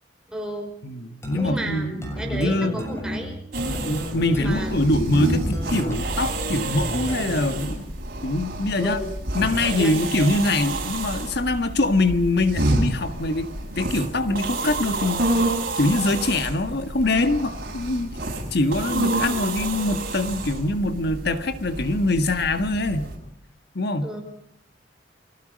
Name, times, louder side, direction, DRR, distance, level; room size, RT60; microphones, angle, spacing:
voice 1, 0.3-0.7 1.3-3.7 4.4-4.7 8.8-9.1 9.8-9.9 24.0-24.2, right 1 dB, 5° right, 1 dB, 5.8 m, -33 dB
voice 2, 0.8-2.8 3.8-7.8 8.2-9.0 9.4-15.5 15.8-18.1 18.5-23.1 23.8-24.1, left 2 dB, 65° left, 9 dB, 1.7 m, -24 dB
sound 1, 1.2-7.7, equal, 15° left, 7.5 m, -32 dB
sound 2, 3.5-23.2, right 2 dB, 55° right, 7.1 m, -29 dB
30.0 x 22.0 x 5.3 m, 0.70 s
head